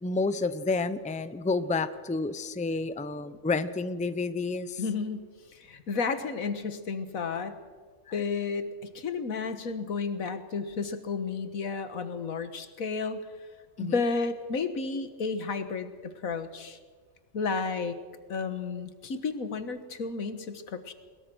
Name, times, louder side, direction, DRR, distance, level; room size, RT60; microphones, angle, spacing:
voice 1, 0.0-4.8 13.8-14.0, left 3 dB, 10° left, 13 dB, 0.6 m, -30 dB
voice 2, 4.8-7.6 8.1-13.2 13.8-16.8 17.3-18.0 18.3-20.9, left 4 dB, 90° left, 10 dB, 1.8 m, -32 dB
21.5 x 21.5 x 6.3 m, 1.5 s
omnidirectional pair, 1.4 m